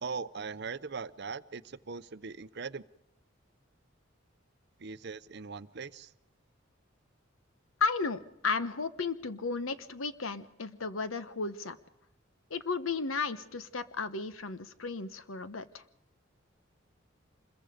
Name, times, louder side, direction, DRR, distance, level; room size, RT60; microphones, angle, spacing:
voice 1, 0.0-2.8 4.8-6.1, right 5 dB, 55° right, 15 dB, 0.7 m, -40 dB
voice 2, 7.8-11.8 12.5-15.8, left 4 dB, 85° left, 12 dB, 1.1 m, -34 dB
26.0 x 21.5 x 5.1 m, 0.86 s
head